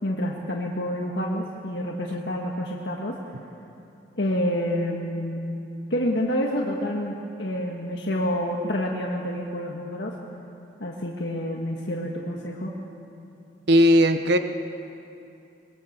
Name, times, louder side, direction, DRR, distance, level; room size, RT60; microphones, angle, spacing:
voice 1, 0.0-3.1 4.2-5.6 5.9-10.1 10.8-12.7, equal, 70° left, -1 dB, 1.7 m, -28 dB
voice 2, 13.7-14.4, equal, 65° right, 8 dB, 1.0 m, -17 dB
23.5 x 20.5 x 6.7 m, 2.7 s
head